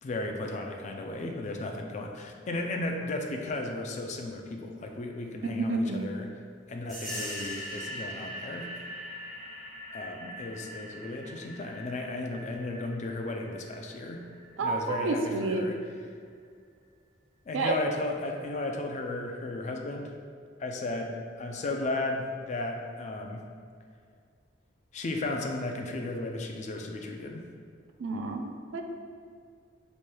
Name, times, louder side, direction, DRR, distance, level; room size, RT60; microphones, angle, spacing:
voice 1, 0.0-6.3 6.7-8.7 9.9-14.2 14.6-16.1 17.5-20.1 20.6-23.4 24.9-27.4, left 2 dB, 40° left, 3 dB, 0.3 m, -35 dB
voice 2, 5.4-6.1 14.6-15.6 17.5-17.7 28.0-28.8, right 3 dB, 85° right, 4 dB, 0.4 m, -29 dB
sound 1, 6.9-15.2, equal, ahead, 1.3 m, -42 dB
4.3 x 3.2 x 2.2 m, 2.2 s
head